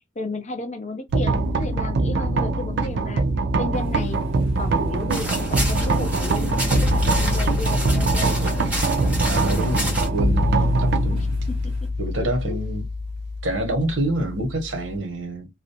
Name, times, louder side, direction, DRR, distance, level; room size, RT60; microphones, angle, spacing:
voice 1, 0.0-3.2 3.6-4.2 4.6-8.6 10.5-10.7 11.1-11.2 11.5-11.9 12.2-12.6, left 2 dB, 35° left, 0.6 m, -33 dB
sound 1, 1.1-15.0, right 1 dB, 60° right, 0.4 m, -23 dB
sound 2, 3.7-11.9, equal, 30° right, 1.2 m, -43 dB
sound 3, 5.1-10.1, equal, 10° right, 1.1 m, -29 dB
voice 2, 9.2-11.3 12.0-12.8 13.4-15.5, right 1 dB, 75° right, 1.0 m, -27 dB
2.4 x 2.0 x 2.6 m
head